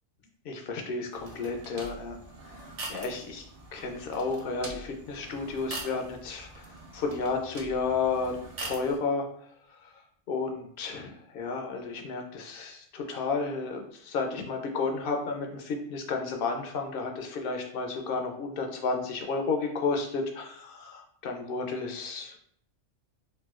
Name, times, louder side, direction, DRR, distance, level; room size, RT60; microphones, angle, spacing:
voice 1, 0.4-2.2 2.9-3.4 3.7-6.7 6.9-8.4 8.6-9.3 9.7-10.0 10.3-22.4, left 4 dB, 65° left, 3 dB, 0.6 m, -32 dB
sound 1, 1.1-9.0, right 2 dB, 60° right, 0.4 m, -43 dB
4.1 x 2.2 x 2.3 m, 0.65 s
omnidirectional pair, 1.3 m